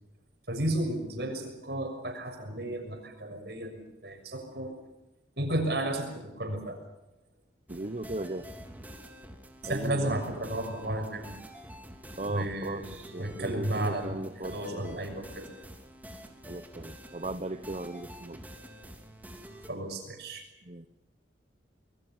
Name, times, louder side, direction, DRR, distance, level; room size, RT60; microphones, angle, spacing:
voice 1, 0.5-4.7 5.4-6.8 9.6-11.3 12.2-12.8 13.2-15.5 19.7-20.4, right 1 dB, 60° right, 5 dB, 6.4 m, -33 dB
sound 1, 7.7-19.7, equal, 10° right, 2.8 m, -47 dB
voice 2, 7.7-8.5 9.7-10.2 12.2-15.0 16.5-18.4 20.7-20.9, right 2 dB, 35° right, 9 dB, 0.8 m, -37 dB
25.0 x 22.5 x 7.3 m, 0.99 s
head